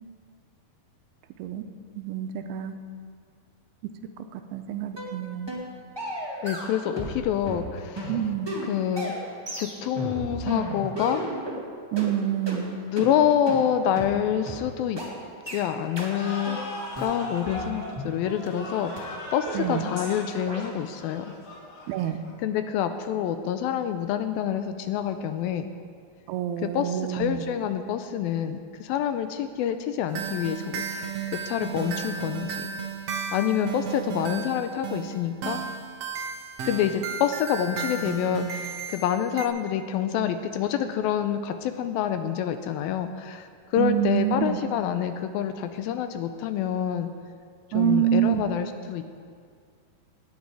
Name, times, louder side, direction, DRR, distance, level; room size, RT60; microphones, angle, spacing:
voice 1, 2.0-2.8 4.2-5.6 8.1-8.6 11.9-12.7 19.5-19.9 21.9-22.2 26.3-27.4 43.8-44.6 47.7-48.4, right 10 dB, 90° right, 8 dB, 2.7 m, -27 dB
sound 1, 5.0-5.1 5.5-5.7 6.0-7.2 7.4-11.6 12.0-12.1 12.5-12.6 13.0-13.1 13.5-13.6 14.0-14.1 14.5-14.6 15.0-15.1 15.5-15.6 16.0-16.1 16.5-16.6 16.9-18.1 18.5-18.6 19.0-19.1 19.5-19.6 20.0-20.1 20.5-20.6, equal, 15° right, 0.7 m, -34 dB
voice 2, 6.4-8.1 8.6-9.1 9.6-11.2 12.9-15.0 15.5-16.6 17.0-21.3 22.4-25.7 26.6-31.1 31.5-32.7 33.3-35.6 36.7-47.1 47.7-49.0, left 9 dB, 80° left, 9 dB, 2.3 m, -27 dB
sound 2, 16.1-22.5, left 1 dB, 45° left, 1.3 m, -38 dB
sound 3, 30.1-39.5, right 6 dB, 70° right, 1.5 m, -34 dB
18.5 x 9.4 x 4.8 m, 2.1 s
omnidirectional pair, 4.5 m